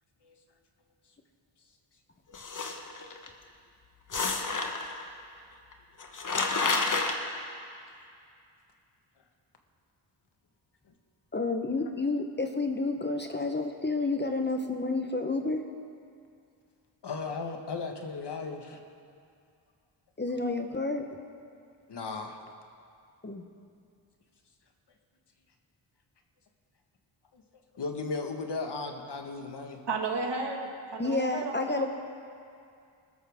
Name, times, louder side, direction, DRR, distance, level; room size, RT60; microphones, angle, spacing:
sound 1, 2.3-3.3 4.1-5.0 5.7-5.8 6.0-7.1, left 3 dB, 40° left, 1.3 m, -29 dB
voice 1, 11.3-15.6 20.2-21.0 23.2-23.4 31.0-31.9, left 3 dB, 20° left, 4 dB, 1.0 m, -30 dB
voice 2, 17.0-18.8 21.9-22.4 27.3-29.8, left 4 dB, 55° left, 3 dB, 1.6 m, -36 dB
voice 3, 29.9-31.9, right 3 dB, 55° right, 1 dB, 2.0 m, -33 dB
20.0 x 13.5 x 3.6 m, 2.4 s
cardioid pair, 75°, 48 cm